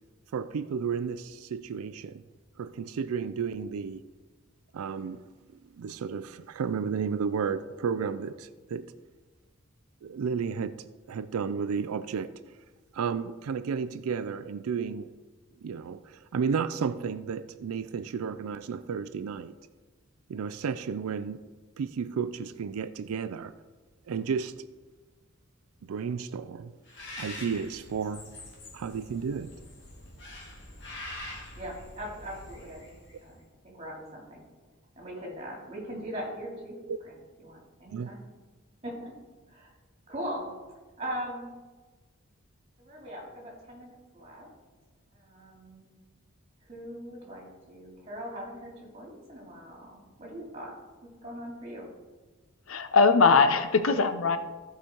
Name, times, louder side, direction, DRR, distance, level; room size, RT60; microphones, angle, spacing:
voice 1, 0.3-2.2 2.6-4.0 4.7-5.2 5.8-8.9 10.0-12.3 12.9-15.1 15.6-19.6 20.3-21.4 21.8-23.5 24.1-24.7 25.8-26.8 27.2-28.3 28.7-29.6 36.9-37.0 37.9-38.1, right 6 dB, 85° right, 0.4 m, -32 dB
Bird, 26.9-33.3, left 1 dB, 55° left, 2.1 m, -45 dB
voice 2, 31.5-33.0 33.2-34.4 35.0-38.2 38.8-39.1 39.5-39.7 40.1-40.5 41.0-41.5 42.8-44.5 45.1-45.9 46.6-50.7 51.2-51.9, equal, 30° right, 2.7 m, -40 dB
voice 3, 52.7-54.4, left 4 dB, 70° left, 0.6 m, -21 dB
14.5 x 5.0 x 4.5 m
head